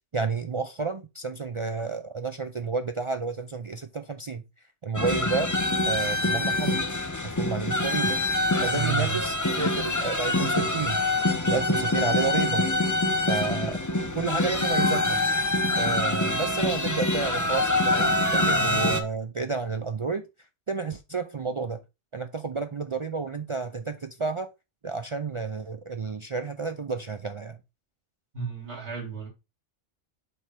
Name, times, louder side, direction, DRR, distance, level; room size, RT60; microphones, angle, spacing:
voice 1, 0.1-4.4 4.8-5.5 5.9-6.9 7.4-8.2 8.6-11.0 11.5-12.7 13.3-13.9 14.1-15.2 15.8-20.3 20.7-21.8 22.1-24.5 24.8-27.6, right 4 dB, 50° right, 0.3 m, -31 dB
sound 1, 4.9-19.0, left 1 dB, 15° left, 0.8 m, -25 dB
voice 2, 8.7-9.3 28.3-29.3, right 7 dB, 65° right, 3.9 m, -32 dB
7.8 x 3.4 x 5.8 m
omnidirectional pair, 1.2 m